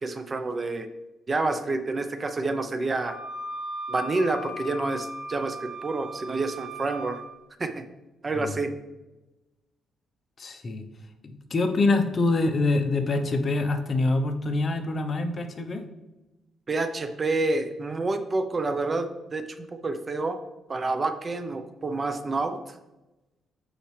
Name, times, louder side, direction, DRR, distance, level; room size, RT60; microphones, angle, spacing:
voice 1, 0.0-0.9 1.3-3.2 3.9-7.2 7.6-7.8 8.2-8.7 16.7-19.4 19.7-20.4 20.7-22.6, right 3 dB, 30° right, 9 dB, 0.5 m, -28 dB
Wind instrument woodwind instrument, 3.0-7.2, equal, ahead, 2.4 m, -37 dB
voice 2, 10.4-10.8 11.2-15.8, left 2 dB, 40° left, 6 dB, 0.8 m, -25 dB
8.8 x 4.2 x 3.2 m, 1.0 s
cardioid pair, 100°, 0 cm